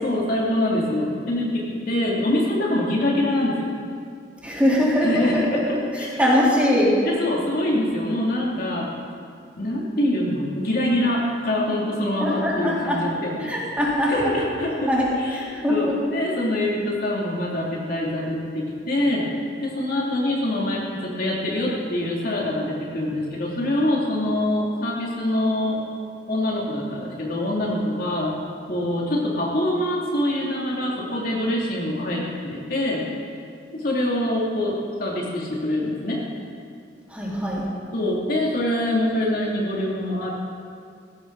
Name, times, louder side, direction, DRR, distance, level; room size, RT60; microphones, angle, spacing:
voice 1, 0.0-3.7 4.7-6.3 7.0-8.9 9.6-13.5 14.1-14.9 15.2-19.3 19.6-25.8 26.3-28.4 28.7-33.0 33.7-36.2 37.9-40.3, left 1 dB, 55° left, -4 dB, 3.0 m, -24 dB
voice 2, 4.4-5.8 6.2-6.9 12.2-13.0 13.4-14.3 14.9-15.1 15.3-16.0 37.1-37.7, left 1 dB, 10° right, -6 dB, 3.8 m, -22 dB
20.0 x 16.5 x 4.1 m, 2.3 s
head